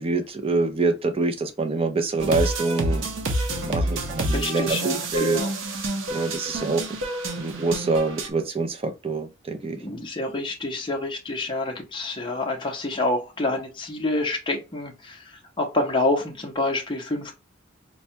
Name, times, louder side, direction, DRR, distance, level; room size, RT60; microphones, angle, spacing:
voice 1, 0.0-3.1 3.6-5.4 6.1-6.8 7.4-9.8, right 3 dB, 30° right, 0.5 m, -25 dB
sound 1, 2.2-8.3, right 1 dB, 75° right, 0.7 m, -28 dB
voice 2, 4.3-5.5 9.8-15.3 15.6-17.4, left 2 dB, 25° left, 0.6 m, -27 dB
4.2 x 2.2 x 2.7 m
head